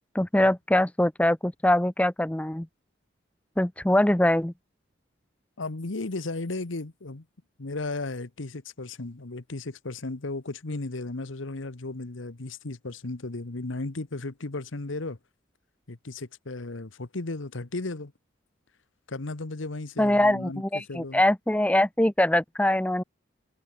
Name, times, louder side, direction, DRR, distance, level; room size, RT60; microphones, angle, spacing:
voice 1, 0.1-2.7 3.6-4.5 20.0-23.0, left 1 dB, 5° left, 0.5 m, -23 dB
voice 2, 5.6-7.2 7.6-15.2 15.9-18.1 19.1-21.2, left 2 dB, 90° left, 1.2 m, -35 dB
head